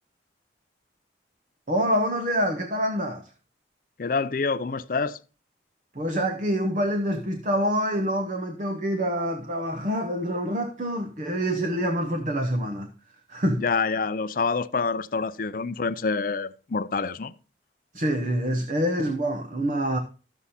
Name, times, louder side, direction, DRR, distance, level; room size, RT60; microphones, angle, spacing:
voice 1, 1.7-3.3 5.9-12.9 13.3-13.6 17.9-20.0, equal, 40° right, 0.9 m, -26 dB
voice 2, 4.0-5.2 13.6-17.3, left 4 dB, 45° left, 0.5 m, -27 dB
12.5 x 7.1 x 4.2 m
head